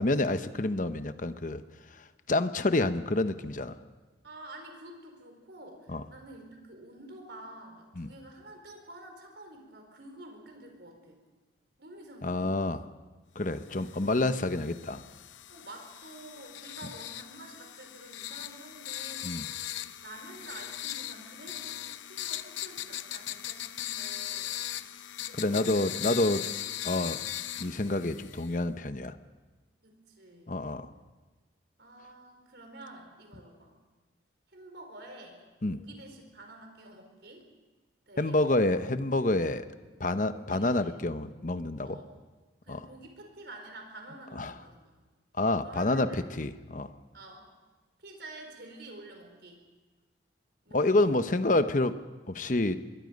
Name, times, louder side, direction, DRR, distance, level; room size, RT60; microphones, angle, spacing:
voice 1, 0.0-1.6 2.3-3.7 5.9-6.0 8.0-8.1 12.2-12.8 13.3-15.0 19.2-19.5 25.4-26.4 26.8-27.2 27.6-29.2 30.5-30.9 35.6-35.8 38.2-39.7 40.0-42.0 42.7-42.9 44.4-44.5 45.4-46.9 50.7-52.0 52.3-52.8, left 2 dB, 45° left, 10 dB, 0.9 m, -28 dB
voice 2, 4.2-11.2 11.8-12.5 15.5-19.7 20.0-24.5 25.2-25.9 29.8-30.8 31.8-33.7 34.5-35.4 35.7-37.5 38.1-38.4 40.3-41.1 41.8-42.1 42.6-45.1 45.6-46.4 47.1-47.5 48.0-49.6 50.6-51.0, right 1 dB, 65° right, 3 dB, 4.6 m, -49 dB
sound 1, 13.7-28.6, left 12 dB, 85° left, 0.7 m, -39 dB
25.5 x 22.0 x 5.3 m, 1.3 s
head